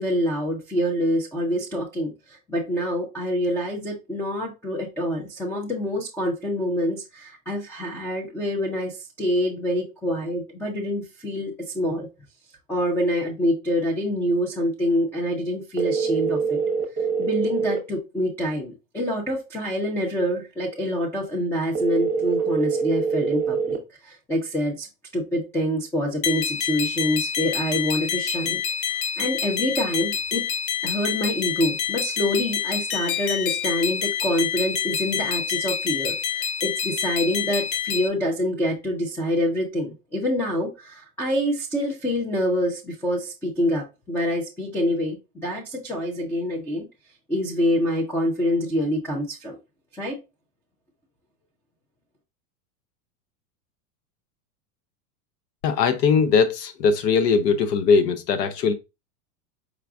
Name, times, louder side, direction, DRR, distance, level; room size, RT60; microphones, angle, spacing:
voice 1, 0.0-12.1 12.7-16.6 17.2-23.8 24.0-24.9 25.1-30.4 30.8-46.9 47.3-49.6 49.9-50.2, equal, 5° left, 0.3 m, -26 dB
sound 1, 15.8-17.8 21.7-23.8, right 5 dB, 20° right, 0.9 m, -24 dB
sound 2, 26.2-38.1, left 8 dB, 50° left, 0.7 m, -27 dB
voice 2, 55.6-58.7, left 5 dB, 80° left, 0.9 m, -20 dB
4.9 x 2.3 x 3.4 m
supercardioid pair, 125°, 48 cm